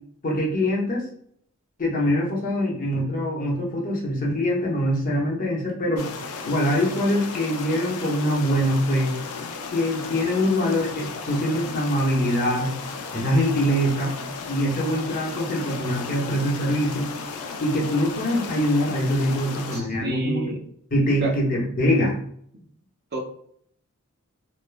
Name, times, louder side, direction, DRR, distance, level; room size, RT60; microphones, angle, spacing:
voice 1, 0.2-1.1 1.8-6.1 6.5-9.1 9.7-12.7 13.1-14.1 14.5-17.1 17.6-20.4 20.9-22.2, equal, 40° left, -2 dB, 0.8 m, -23 dB
sound 1, 6.0-19.8, left 4 dB, 90° left, 0.4 m, -35 dB
voice 2, 19.7-20.6 21.2-21.3 23.1-23.2, right 2 dB, 50° right, 1 dB, 0.6 m, -29 dB
3.2 x 2.1 x 2.2 m, 0.65 s
head